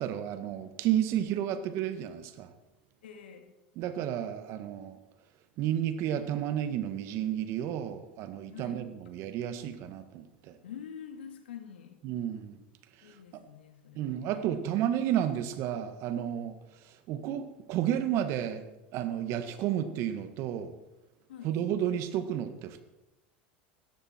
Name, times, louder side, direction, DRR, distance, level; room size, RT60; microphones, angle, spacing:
voice 1, 0.0-2.5 3.8-5.0 5.6-10.6 12.0-12.6 14.0-16.6 16.8-18.7 18.9-20.7 21.4-22.8, right 10 dB, 55° right, 10 dB, 1.6 m, -32 dB
voice 2, 3.0-3.5 8.5-9.1 10.6-12.0 13.0-14.5 21.3-21.5, left 8 dB, 90° left, 5 dB, 2.4 m, -47 dB
17.0 x 13.5 x 4.5 m, 0.98 s
hypercardioid pair, 100°, 6 cm